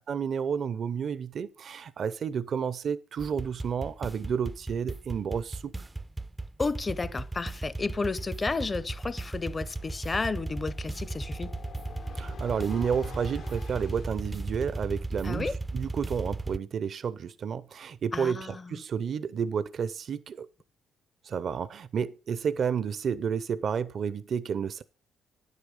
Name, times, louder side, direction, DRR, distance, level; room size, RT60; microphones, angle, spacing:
voice 1, 0.1-5.7 12.1-20.5 21.2-24.8, right 7 dB, 55° right, 0.6 m, -31 dB
sound 1, 3.2-16.6, right 2 dB, 15° right, 0.4 m, -36 dB
voice 2, 6.6-11.5 15.2-15.5 18.1-18.8, left 3 dB, 30° left, 0.7 m, -32 dB
sound 2, 8.8-14.3, left 7 dB, 70° left, 1.1 m, -48 dB
9.8 x 8.3 x 5.3 m
cardioid pair, 90°, 0 cm